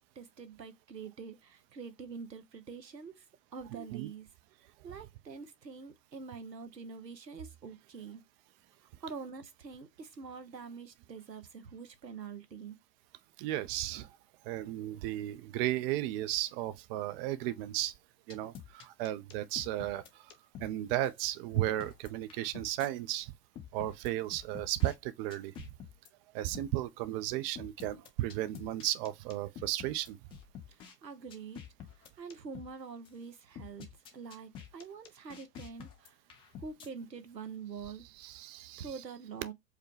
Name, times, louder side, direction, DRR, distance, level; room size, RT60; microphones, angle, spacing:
voice 1, 0.2-3.2 3.5-4.3 4.8-8.2 9.0-12.8 30.7-31.6 32.0-33.9 34.1-36.2 36.6-38.1 38.8-39.5, right 5 dB, 90° right, 0.8 m, -45 dB
voice 2, 3.7-4.1 13.4-14.2 14.4-17.9 18.3-20.3 20.6-23.3 23.7-25.5 26.3-30.2 38.2-38.9, right 15 dB, 40° right, 0.5 m, -34 dB
sound 1, 18.3-20.7 21.1-21.2 21.6-22.9 23.6-24.9 25.3-26.1 26.5-26.7 27.6-30.9 31.3-32.7 33.1-33.2 33.6-36.9, left 9 dB, 15° left, 0.3 m, -49 dB
4.8 x 2.2 x 3.1 m
figure-of-eight pair, 85°, 48 cm